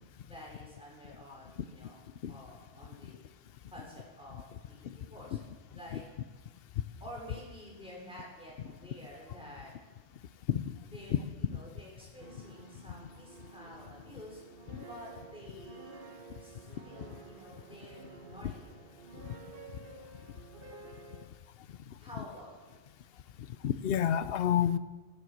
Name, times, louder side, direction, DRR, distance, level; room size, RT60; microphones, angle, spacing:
voice 1, 0.3-3.3 3.7-5.4 5.7-6.1 7.0-9.7 10.9-14.4 14.9-16.1 16.4-18.8 22.0-22.8, equal, 5° right, -4 dB, 5.4 m, -50 dB
sound 1, 12.2-21.3, right 4 dB, 55° right, 1.4 m, -51 dB
voice 2, 23.6-24.8, left 10 dB, 65° left, 14 dB, 0.8 m, -28 dB
16.0 x 11.0 x 6.4 m, 1.3 s
omnidirectional pair, 1.1 m